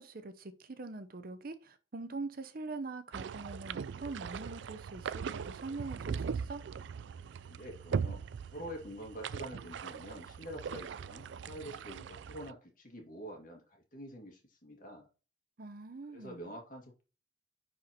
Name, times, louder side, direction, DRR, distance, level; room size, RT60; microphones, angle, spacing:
voice 1, 0.0-6.6 15.6-16.4, right 3 dB, 50° right, 0.7 m, -43 dB
sound 1, 3.1-12.5, right 6 dB, 75° right, 0.3 m, -40 dB
voice 2, 7.5-15.1 16.1-17.0, equal, 45° left, 2.0 m, -47 dB
10.0 x 4.3 x 2.9 m
head